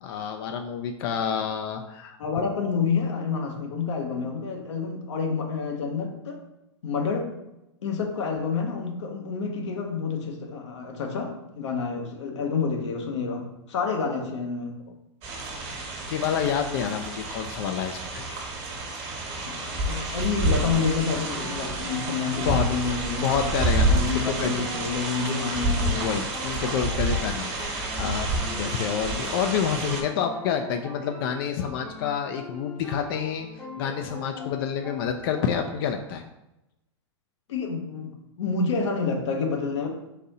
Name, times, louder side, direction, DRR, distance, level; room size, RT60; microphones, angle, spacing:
voice 1, 0.0-2.5 16.1-18.4 22.4-22.7 23.1-24.5 26.0-33.5 33.8-36.2, left 7 dB, 50° left, 5 dB, 0.4 m, -28 dB
voice 2, 2.2-6.4 6.8-7.3 7.8-14.8 19.3-23.5 23.9-26.1 37.5-39.9, left 5 dB, 80° left, 2 dB, 0.9 m, -29 dB
sound 1, 15.2-30.0, right 2 dB, 40° right, 1.2 m, -29 dB
sound 2, 20.4-36.0, left 2 dB, 5° left, 0.7 m, -42 dB
4.1 x 2.6 x 4.0 m, 0.91 s
hypercardioid pair, 120°, 15 cm